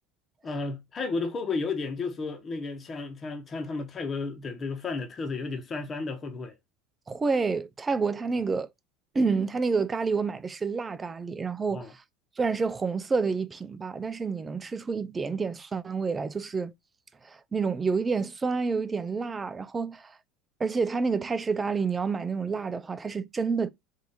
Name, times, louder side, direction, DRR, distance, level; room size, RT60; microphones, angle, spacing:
voice 1, 0.4-6.5 11.7-11.9, left 3 dB, 30° left, 1.1 m, -33 dB
voice 2, 7.1-8.7 9.1-11.9 12.4-16.7 17.2-20.2 20.6-23.7, right 4 dB, 20° right, 0.5 m, -28 dB
3.7 x 2.7 x 4.3 m
supercardioid pair, 95°, 0 cm